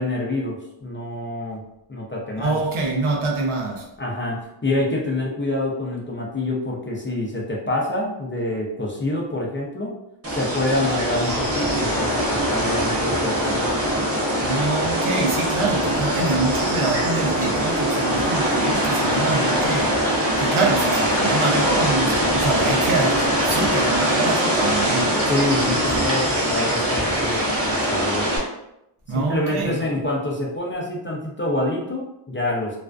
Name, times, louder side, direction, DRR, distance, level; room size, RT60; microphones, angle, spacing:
voice 1, 0.0-1.6 1.9-2.6 4.0-10.0 10.3-13.7 25.3-28.3 29.1-32.8, left 1 dB, 25° left, 0.4 m, -26 dB
voice 2, 2.4-3.9 14.4-20.0 20.4-25.2 29.1-29.8, right 3 dB, 80° right, 0.7 m, -25 dB
sound 1, 10.2-28.4, equal, 30° right, 0.6 m, -22 dB
2.4 x 2.3 x 2.2 m
wide cardioid pair, 110°, 50 cm